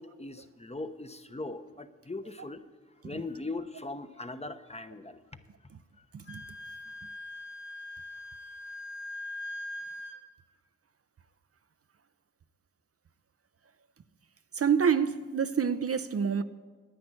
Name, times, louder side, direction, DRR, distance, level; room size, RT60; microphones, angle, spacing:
voice 1, 0.0-2.6 3.0-5.2, left 2 dB, 20° left, 1.0 m, -39 dB
Wind instrument woodwind instrument, 6.2-10.2, left 2 dB, 35° left, 2.2 m, -41 dB
voice 2, 14.5-16.4, right 7 dB, 45° right, 0.7 m, -27 dB
10.5 x 9.3 x 9.1 m
supercardioid pair, 45°, 32 cm